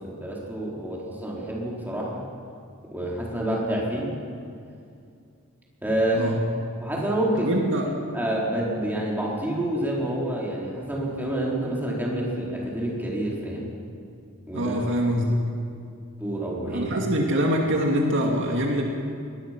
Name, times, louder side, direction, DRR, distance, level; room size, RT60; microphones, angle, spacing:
voice 1, 0.0-2.2 2.9-4.1 5.8-6.3 6.8-7.6 8.1-13.7 14.5-14.7 16.2-16.9, right 1 dB, 10° right, -4 dB, 4.3 m, -28 dB
voice 2, 7.4-7.9 14.5-15.4 16.7-18.8, equal, 60° right, 0 dB, 2.4 m, -24 dB
22.5 x 19.0 x 6.1 m, 2.4 s
head